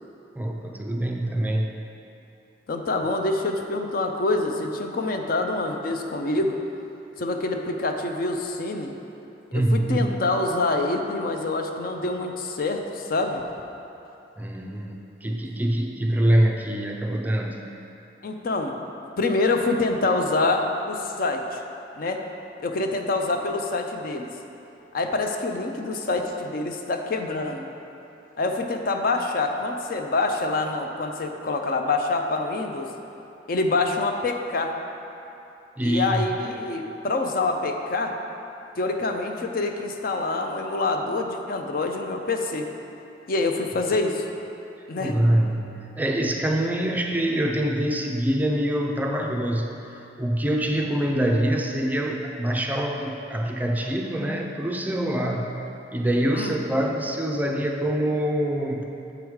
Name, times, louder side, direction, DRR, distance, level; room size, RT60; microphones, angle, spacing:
voice 1, 0.4-1.7 9.5-10.1 14.4-17.6 35.8-36.2 45.0-55.5 55.9-58.9, right 1 dB, 10° right, 1 dB, 0.4 m, -25 dB
voice 2, 2.7-6.6 7.2-8.9 9.5-13.4 18.2-18.7 19.2-21.6 22.0-22.2 22.6-24.3 24.9-27.7 28.4-32.9 33.5-34.7 35.8-38.2 38.8-42.7 43.3-44.2 44.9-45.2 56.3-56.6, left 2 dB, 50° left, 4 dB, 0.5 m, -26 dB
7.8 x 4.9 x 4.7 m, 2.9 s
head